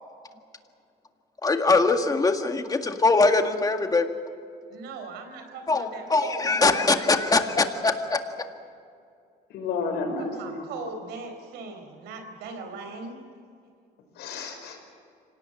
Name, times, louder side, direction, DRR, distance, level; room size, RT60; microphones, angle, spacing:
voice 1, 1.4-4.2 5.7-8.2, left 3 dB, 20° left, 5 dB, 1.9 m, -22 dB
voice 2, 4.7-7.0 10.3-13.2, right 4 dB, 85° right, 6 dB, 4.5 m, -38 dB
voice 3, 9.5-10.6 14.2-14.8, left 4 dB, 80° left, 3 dB, 5.6 m, -31 dB
26.5 x 18.0 x 7.8 m, 2.4 s
cardioid pair, 110°, 17 cm